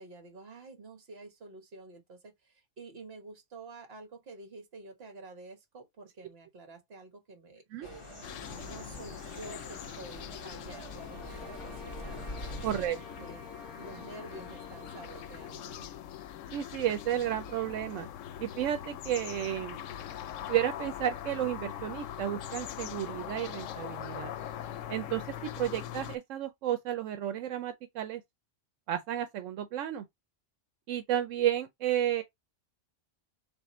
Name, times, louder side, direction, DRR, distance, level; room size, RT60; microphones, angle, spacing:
voice 1, 0.0-8.0 8.5-12.2 12.7-13.5 13.8-15.9, right 3 dB, 55° right, 1.5 m, -49 dB
sound 1, 7.8-12.9, left 1 dB, 25° left, 1.3 m, -44 dB
sound 2, 8.2-26.2, left 10 dB, 85° left, 0.9 m, -42 dB
sound 3, 10.9-15.7, equal, ahead, 1.3 m, -51 dB
voice 2, 12.6-13.0 16.5-18.1 18.4-19.8 20.5-24.3 24.9-28.2 28.9-30.0 30.9-32.2, right 11 dB, 85° right, 1.0 m, -32 dB
3.6 x 3.4 x 4.2 m
omnidirectional pair, 1.3 m